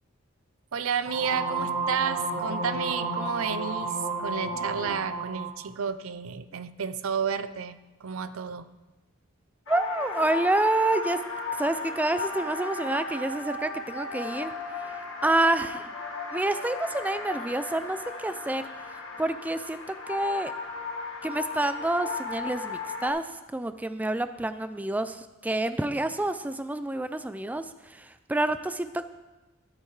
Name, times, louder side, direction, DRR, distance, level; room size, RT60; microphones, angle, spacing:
voice 1, 0.7-8.7, right 7 dB, 80° right, 0.5 m, -31 dB
sound 1, 1.1-5.6, right 2 dB, 50° right, 2.5 m, -31 dB
sound 2, 9.7-23.1, left 4 dB, 75° left, 1.8 m, -35 dB
voice 2, 9.7-11.2 11.6-14.9 15.2-16.0 16.3-20.5 21.2-29.1, right 2 dB, 10° right, 0.3 m, -28 dB
13.0 x 13.0 x 3.2 m
head